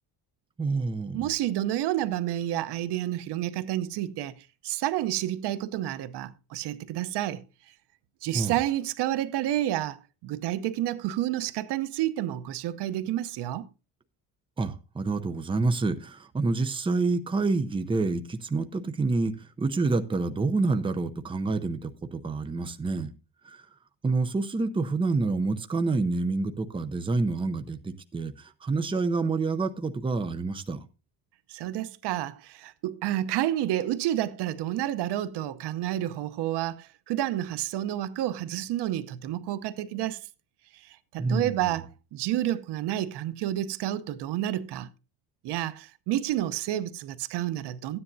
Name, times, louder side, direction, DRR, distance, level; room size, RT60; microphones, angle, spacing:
voice 1, 0.6-1.3 8.3-8.6 14.6-23.1 23.5-23.6 24.0-30.8 41.2-41.6, right 3 dB, 15° right, 0.6 m, -28 dB
voice 2, 1.1-4.3 4.6-7.4 8.2-13.7 31.5-40.3 40.7-44.9 45.4-48.0, right 13 dB, 85° right, 0.9 m, -30 dB
14.0 x 9.9 x 2.7 m
cardioid pair, 155°, 40 cm